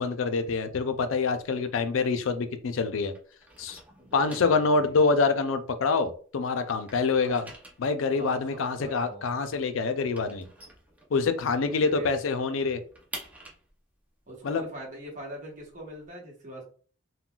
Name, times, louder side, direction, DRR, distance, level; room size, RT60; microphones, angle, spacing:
voice 1, 0.0-3.1 3.6-3.8 4.1-7.5 7.8-10.5 11.1-12.8 14.4-14.6, left 4 dB, 85° left, 0.4 m, -26 dB
sound 1, 1.4-2.8 3.1-6.3 6.6-11.6 11.9-12.0 12.3-16.1, right 1 dB, 10° right, 0.6 m, -48 dB
voice 2, 3.9-5.0 7.1-7.4 8.0-9.3 11.6-12.1 14.3-16.7, right 1 dB, 40° right, 1.1 m, -42 dB
3.7 x 2.2 x 2.3 m
head